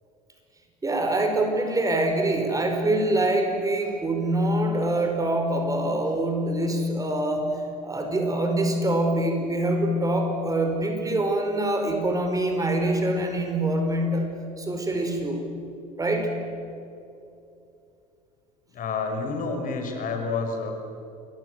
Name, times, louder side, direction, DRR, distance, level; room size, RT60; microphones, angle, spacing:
voice 1, 0.8-15.4 16.0-16.3, right 1 dB, 15° right, 4 dB, 5.0 m, -25 dB
voice 2, 18.7-20.7, left 4 dB, 40° left, 4 dB, 5.4 m, -29 dB
28.5 x 22.5 x 8.0 m, 2.7 s
figure-of-eight pair, 70°, 21 cm